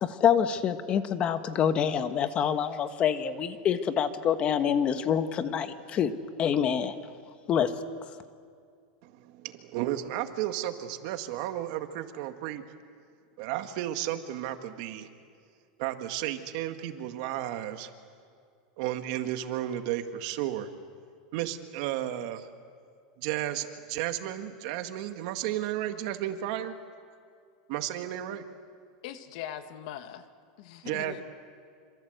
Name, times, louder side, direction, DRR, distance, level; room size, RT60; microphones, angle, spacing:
voice 1, 0.0-6.1 6.4-6.9 7.5-7.7, left 8 dB, 30° left, 10 dB, 1.3 m, -26 dB
voice 2, 9.0-12.6 13.4-15.1 15.8-17.9 18.8-20.7 21.3-22.5 23.2-26.7 27.7-28.5 30.8-31.2, right 12 dB, 55° right, 7 dB, 1.9 m, -33 dB
voice 3, 29.0-30.3 30.6-31.2, left 11 dB, 60° left, 8 dB, 1.9 m, -40 dB
27.0 x 26.0 x 8.1 m, 2.3 s
supercardioid pair, 155°, 4 cm